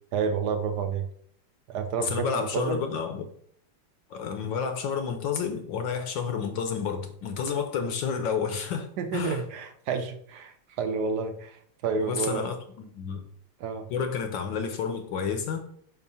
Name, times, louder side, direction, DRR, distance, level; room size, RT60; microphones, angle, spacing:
voice 1, 0.1-1.0 1.7-2.8 9.0-12.5 13.6-13.9, right 5 dB, 70° right, 7 dB, 0.9 m, -30 dB
voice 2, 2.0-3.3 4.1-9.4 12.0-13.2 13.9-15.6, left 6 dB, 70° left, 6 dB, 1.3 m, -30 dB
5.6 x 4.6 x 5.5 m, 0.66 s
omnidirectional pair, 2.4 m